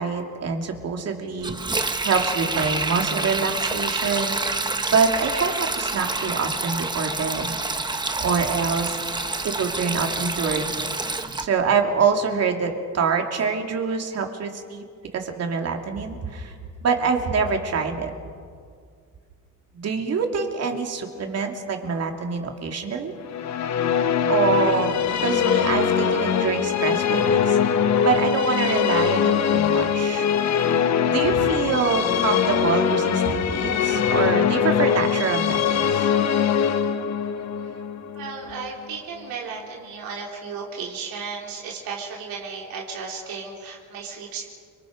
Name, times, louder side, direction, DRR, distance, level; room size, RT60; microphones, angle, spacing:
voice 1, 0.0-1.6 2.0-4.4 4.9-7.6 8.2-9.0 9.4-10.9 11.4-14.8 15.1-16.5 16.8-18.1 19.7-23.1 24.3-27.6 28.0-30.3 31.1-36.1, right 5 dB, 45° right, 3 dB, 2.8 m, -25 dB
Sink (filling or washing), 1.4-11.5, right 3 dB, 15° right, 1.1 m, -27 dB
Musical instrument, 23.2-38.7, left 7 dB, 50° left, 1.3 m, -22 dB
voice 2, 38.1-44.5, right 5 dB, 90° right, -2 dB, 4.0 m, -34 dB
29.5 x 25.5 x 5.2 m, 2.1 s
cardioid pair, 150°, 34 cm